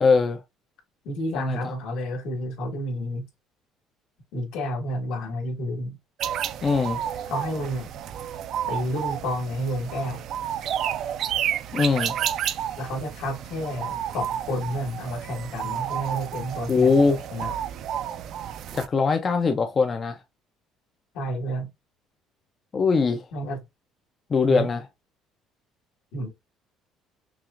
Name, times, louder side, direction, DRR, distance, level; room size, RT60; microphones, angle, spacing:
voice 1, 0.0-0.4 1.3-1.6 6.6-7.0 11.7-12.1 16.7-17.2 18.7-20.2 22.7-23.3 24.3-24.8, left 4 dB, 25° left, 0.4 m, -21 dB
voice 2, 1.0-3.2 4.3-6.0 7.3-7.9 8.7-10.2 12.8-17.0 17.3-17.5 21.1-21.7 23.3-23.6 24.5-24.7 26.1-26.3, equal, 70° left, 1.7 m, -30 dB
sound 1, 6.2-18.9, right 10 dB, 50° right, 0.3 m, -31 dB
5.8 x 2.4 x 2.4 m
cardioid pair, 175°, 0 cm